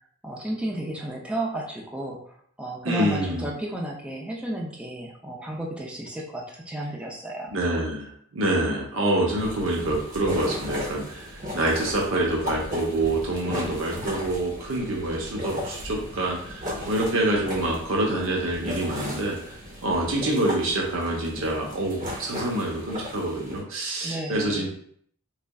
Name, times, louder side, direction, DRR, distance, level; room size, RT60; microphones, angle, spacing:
voice 1, 0.2-7.5 24.0-24.7, right 1 dB, 5° right, -2 dB, 0.4 m, -33 dB
voice 2, 2.8-3.5 7.5-19.4 19.8-24.7, right 1 dB, 70° right, -1 dB, 0.7 m, -26 dB
sound 1, 9.4-23.6, left 1 dB, 40° right, 0.9 m, -36 dB
3.7 x 3.2 x 2.2 m, 0.64 s
head